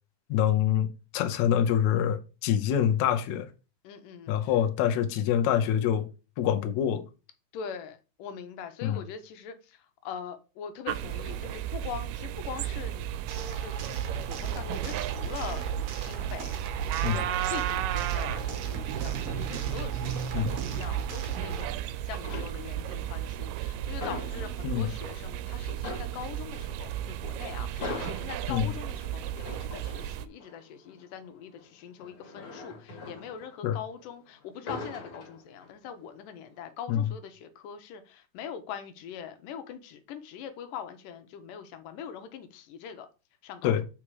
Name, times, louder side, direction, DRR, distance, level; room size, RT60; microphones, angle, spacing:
voice 1, 0.3-0.9 1.1-3.5 4.3-6.1 6.4-7.0 8.8-9.0 17.0-17.2 20.3-20.5 24.6-24.9 28.5-28.7 33.6-33.8 36.9-37.1 43.6-43.8, left 10 dB, 70° left, 2.0 m, -25 dB
voice 2, 3.8-4.5 7.5-13.3 13.6-13.9 14.3-43.1 43.4-43.8, left 7 dB, 90° left, 2.5 m, -42 dB
sound 1, 10.9-30.3, right 11 dB, 90° right, 2.2 m, -34 dB
sound 2, 13.3-21.6, right 6 dB, 65° right, 1.4 m, -36 dB
sound 3, 21.2-21.8 22.1-23.0 23.3-25.1 25.4-25.5 25.8-34.1 34.4-35.9 36.3-36.6, left 3 dB, 30° left, 2.1 m, -42 dB
7.4 x 4.8 x 4.7 m
omnidirectional pair, 3.7 m